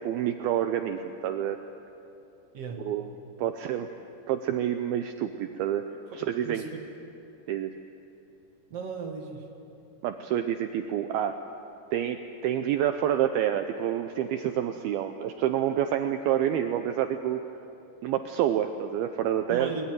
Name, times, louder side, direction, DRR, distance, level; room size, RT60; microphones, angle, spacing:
voice 1, 0.0-1.6 2.8-3.1 3.4-3.9 4.3-5.9 6.1-6.6 7.5-7.7 10.0-11.3 11.9-17.4 18.0-19.7, right 10 dB, 90° right, 7 dB, 2.2 m, -28 dB
voice 2, 6.1-6.8 8.7-9.4 19.5-19.9, right 5 dB, 50° right, 3 dB, 2.0 m, -36 dB
22.0 x 21.0 x 9.2 m, 2.9 s
omnidirectional pair, 5.2 m